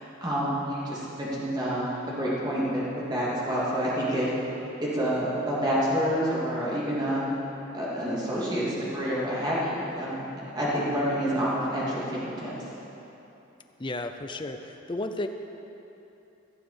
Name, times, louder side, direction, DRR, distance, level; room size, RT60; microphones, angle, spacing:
voice 1, 0.0-4.5 4.8-7.3 7.7-12.5, equal, 20° right, -7 dB, 2.8 m, -28 dB
voice 2, 13.8-15.3, left 2 dB, 25° left, 7 dB, 0.6 m, -33 dB
15.5 x 7.4 x 7.1 m, 3.0 s
head